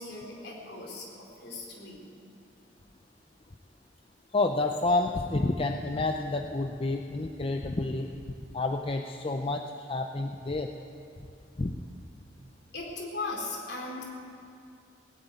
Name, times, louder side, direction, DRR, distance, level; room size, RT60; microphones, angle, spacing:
voice 1, 0.0-2.0 12.7-14.0, left 3 dB, 60° left, -2 dB, 3.7 m, -38 dB
voice 2, 4.3-8.1 8.5-10.7 11.6-11.8, left 2 dB, 30° left, 4 dB, 0.5 m, -29 dB
18.5 x 8.2 x 9.1 m, 2.4 s
head